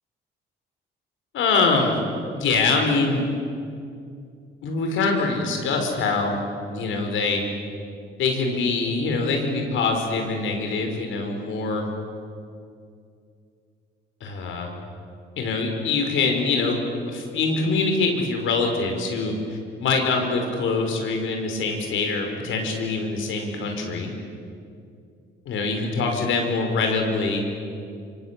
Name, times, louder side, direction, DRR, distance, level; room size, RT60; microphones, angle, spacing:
voice 1, 1.3-2.0 2.3-3.2 4.6-6.4 6.7-7.4 8.2-11.8 14.2-14.7 15.4-16.8 17.1-19.3 19.8-24.1 25.5-27.4, left 4 dB, 80° left, 3 dB, 5.5 m, -24 dB
26.5 x 25.0 x 8.6 m, 2.4 s
cardioid pair, 90°, 20 cm